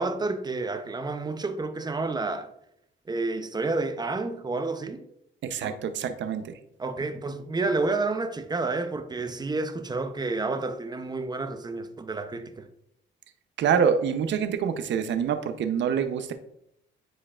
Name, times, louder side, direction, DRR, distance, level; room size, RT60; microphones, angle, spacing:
voice 1, 0.0-2.5 3.1-5.0 5.6-5.8 6.8-12.7, right 3 dB, 20° right, 0.6 m, -30 dB
voice 2, 5.4-6.4 13.6-16.3, right 7 dB, 65° right, 0.7 m, -26 dB
9.9 x 4.5 x 2.4 m
cardioid pair, 90°, 20 cm